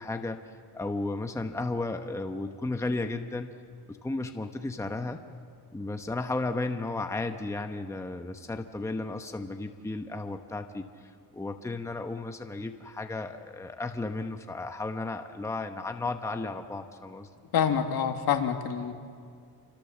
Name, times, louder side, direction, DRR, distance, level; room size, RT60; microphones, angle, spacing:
voice 1, 0.0-3.5 3.9-5.2 5.7-17.3, left 2 dB, 5° left, 6 dB, 1.0 m, -34 dB
voice 2, 17.5-18.9, left 8 dB, 65° left, 5 dB, 2.3 m, -26 dB
29.0 x 26.5 x 7.3 m, 2.2 s
cardioid pair, 145°, 39 cm